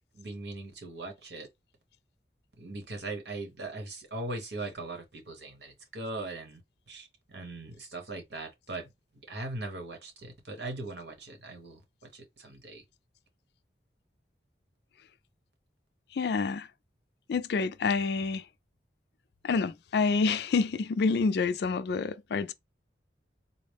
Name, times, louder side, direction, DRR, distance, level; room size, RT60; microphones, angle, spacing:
voice 1, 0.2-1.5 2.6-6.6 6.9-8.9 9.3-11.8 12.1-12.8, right 2 dB, 70° right, 1.0 m, -40 dB
voice 2, 16.1-16.7 17.3-18.4 19.4-22.5, left 4 dB, 60° left, 0.3 m, -28 dB
4.1 x 2.0 x 3.3 m
head